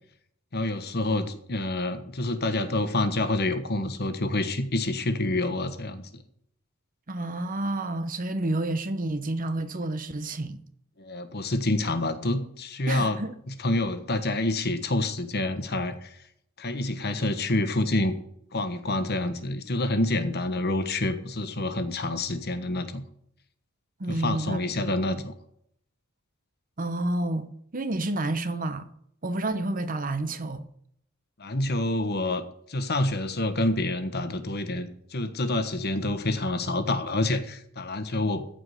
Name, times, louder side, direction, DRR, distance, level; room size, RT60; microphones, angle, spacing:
voice 1, 0.5-6.2 11.0-13.2 13.6-16.2 16.6-18.1 18.5-23.0 24.1-25.3 31.4-32.4 32.7-38.5, left 2 dB, 50° left, 1.3 m, -27 dB
voice 2, 7.1-10.6 12.9-13.3 24.0-25.2 26.8-28.9 29.2-30.7, right 2 dB, 40° right, 0.9 m, -30 dB
14.5 x 5.0 x 8.0 m
head